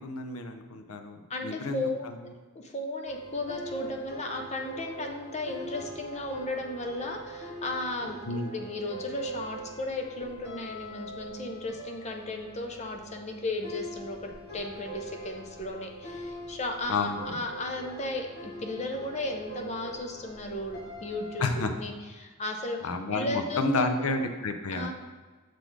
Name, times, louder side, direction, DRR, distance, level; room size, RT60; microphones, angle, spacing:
voice 1, 0.0-2.3 8.3-8.5 16.9-17.4 21.4-21.7 22.8-24.9, left 3 dB, 90° left, 6 dB, 0.6 m, -30 dB
voice 2, 1.3-2.1 2.5-8.2 8.5-22.8 23.1-24.1 24.7-24.9, left 2 dB, 30° left, 3 dB, 0.6 m, -35 dB
sound 1, 3.0-21.4, right 1 dB, 50° left, 1.4 m, -43 dB
6.6 x 4.0 x 4.6 m, 1.3 s
head